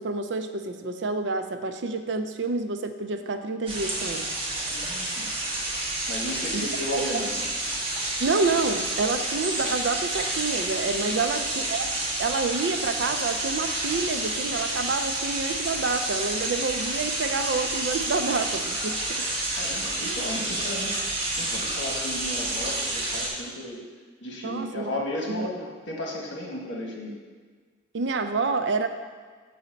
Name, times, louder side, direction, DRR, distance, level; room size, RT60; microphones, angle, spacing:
voice 1, 0.0-4.3 6.5-6.7 6.9-7.2 8.2-19.3 20.0-20.2 24.4-25.5 27.9-28.9, right 3 dB, 70° right, 8 dB, 0.5 m, -28 dB
sound 1, 3.7-23.3, right 2 dB, 30° right, 1.2 m, -29 dB
voice 2, 4.7-5.3 6.1-7.4 11.0-11.5 19.6-21.0 21.4-23.8 24.2-27.1, left 1 dB, 80° left, -1 dB, 1.4 m, -34 dB
7.0 x 4.1 x 5.1 m, 1.5 s
head